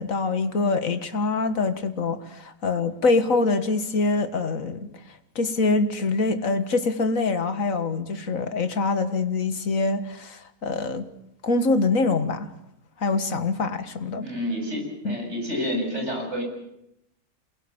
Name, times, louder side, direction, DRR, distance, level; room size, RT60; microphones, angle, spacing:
voice 1, 0.0-4.9 5.4-11.1 11.4-12.5 13.0-14.2 15.1-15.2, left 3 dB, 70° left, 2.1 m, -24 dB
voice 2, 14.2-16.4, left 1 dB, 50° right, 7.7 m, -29 dB
28.5 x 21.5 x 7.3 m
omnidirectional pair, 1.5 m